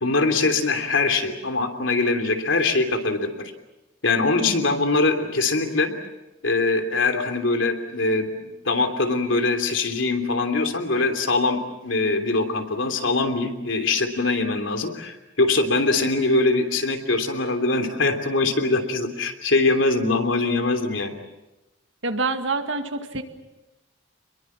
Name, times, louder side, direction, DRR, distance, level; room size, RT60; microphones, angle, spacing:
voice 1, 0.0-3.4 4.0-5.9 6.4-21.2, left 3 dB, 85° left, 6 dB, 3.1 m, -22 dB
voice 2, 22.0-23.2, right 3 dB, 75° right, 6 dB, 2.2 m, -26 dB
29.0 x 22.0 x 7.4 m, 0.99 s
head